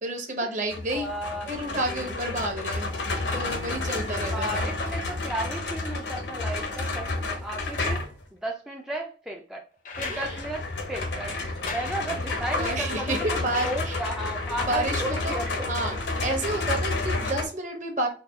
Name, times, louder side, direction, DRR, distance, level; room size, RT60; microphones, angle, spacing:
voice 1, 0.0-1.1 1.5-2.9 3.3-4.7 10.1-10.4 12.6-14.0 14.7-18.1, right 1 dB, 45° right, 2 dB, 0.9 m, -30 dB
sound 1, 0.7-8.2 10.0-17.5, left 2 dB, 75° left, 0.8 m, -30 dB
voice 2, 0.9-2.2 4.3-8.0 8.3-9.6 10.0-11.4 11.7-13.1 13.6-16.0, right 1 dB, 5° right, 0 dB, 0.3 m, -34 dB
sound 2, 9.8-14.5 16.0-16.1, left 4 dB, 45° left, 0.5 m, -41 dB
4.1 x 2.3 x 3.4 m, 0.38 s
head